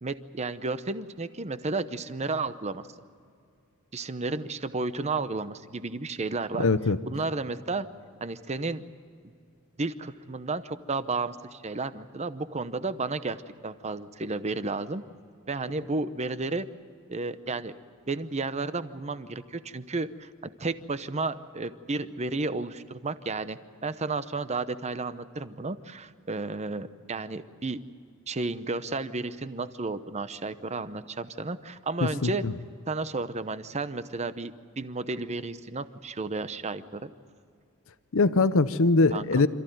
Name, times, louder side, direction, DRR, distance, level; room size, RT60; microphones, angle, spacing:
voice 1, 0.0-2.9 3.9-6.7 7.1-7.9 8.2-8.8 9.8-15.0 15.5-16.7 17.1-17.8 18.1-27.8 28.3-32.4 32.9-37.1 39.1-39.5, right 3 dB, 30° right, 12 dB, 0.8 m, -32 dB
voice 2, 6.6-7.0 32.2-32.5 38.1-39.5, left 3 dB, 65° left, 13 dB, 0.8 m, -22 dB
27.0 x 14.5 x 9.2 m, 2.3 s
head